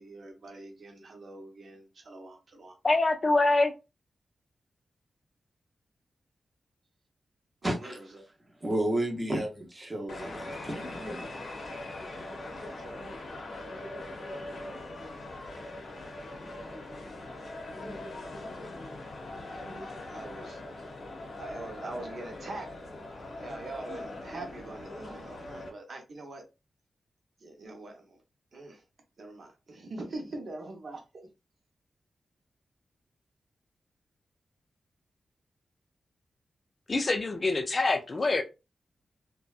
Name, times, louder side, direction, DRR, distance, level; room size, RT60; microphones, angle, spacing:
voice 1, 0.0-2.8 7.6-8.3 12.6-13.1 19.6-20.6 21.4-22.7 23.4-26.4 27.4-28.2 28.5-28.8 29.2-31.0, right 2 dB, 60° right, 0.7 m, -43 dB
voice 2, 2.8-3.7 36.9-38.4, left 2 dB, 35° left, 0.4 m, -25 dB
voice 3, 7.6-8.0 8.6-11.3, right 1 dB, 20° right, 0.7 m, -32 dB
sound 1, 10.1-25.7, left 2 dB, 60° left, 0.7 m, -41 dB
2.6 x 2.2 x 2.3 m
wide cardioid pair, 130°, 0 cm